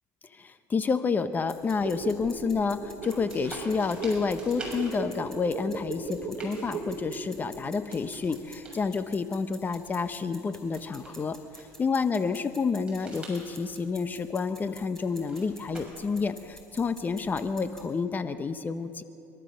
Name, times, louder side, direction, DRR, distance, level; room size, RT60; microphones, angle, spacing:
voice 1, 0.3-11.4 11.8-19.0, left 5 dB, 25° left, 10 dB, 0.9 m, -29 dB
sound 1, 1.4-17.8, equal, 5° left, 4.6 m, -51 dB
sound 2, 1.7-8.5 8.8-8.9, right 4 dB, 45° right, 4.4 m, -38 dB
sound 3, 3.0-17.4, right 2 dB, 15° right, 6.6 m, -49 dB
30.0 x 13.5 x 6.4 m, 2.6 s
supercardioid pair, 110°, 7 cm